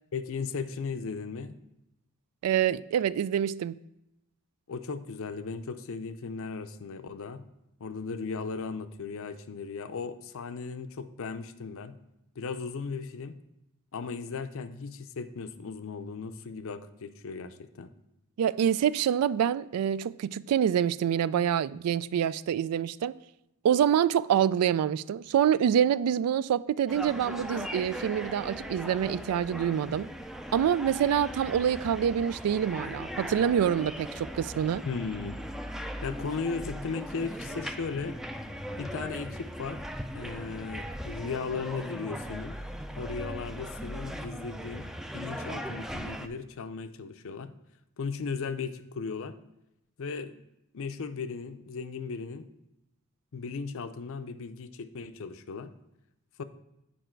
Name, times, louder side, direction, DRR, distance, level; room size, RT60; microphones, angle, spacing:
voice 1, 0.1-1.5 4.7-7.4 7.8-12.0 12.4-13.4 13.9-17.9 34.9-35.4 36.0-38.2 38.8-39.8 40.1-42.6 42.9-47.5 48.0-49.3 50.0-50.4 50.7-52.5 53.3-55.7 56.4-56.5, left 5 dB, 65° left, 0.5 m, -36 dB
voice 2, 2.4-3.8 18.4-23.2 23.6-30.1 30.5-34.8, right 9 dB, 85° right, 0.3 m, -26 dB
sound 1, 26.9-46.3, equal, ahead, 0.4 m, -39 dB
8.9 x 5.0 x 4.5 m
head